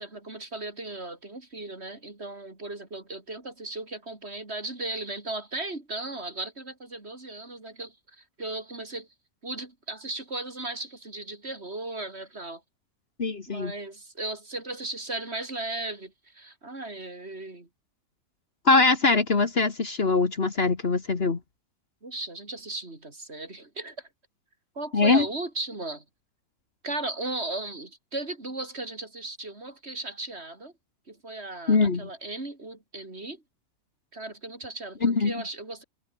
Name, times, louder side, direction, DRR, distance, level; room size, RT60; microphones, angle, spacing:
voice 1, 0.0-9.1 9.4-12.6 13.5-17.7 22.0-24.1 24.8-26.0 26.8-30.7 31.1-33.4 34.1-35.8, right 2 dB, 45° right, 4.0 m, -36 dB
voice 2, 13.2-13.7 18.6-21.4 24.9-25.3 31.7-32.1 35.0-35.3, left 3 dB, 45° left, 1.9 m, -22 dB
omnidirectional pair, 1.5 m